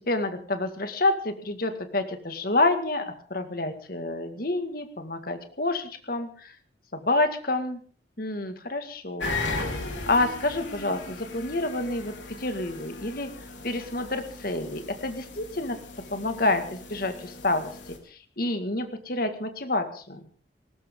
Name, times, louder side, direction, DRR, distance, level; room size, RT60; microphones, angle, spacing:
voice 1, 0.0-6.6 6.9-7.8 8.2-9.4 9.7-9.8 10.1-13.3 13.6-15.8 16.1-20.3, left 2 dB, 50° left, 8 dB, 2.0 m, -28 dB
sound 1, 9.2-18.0, left 2 dB, 75° left, 3.6 m, -37 dB
19.5 x 19.0 x 3.8 m, 0.43 s
head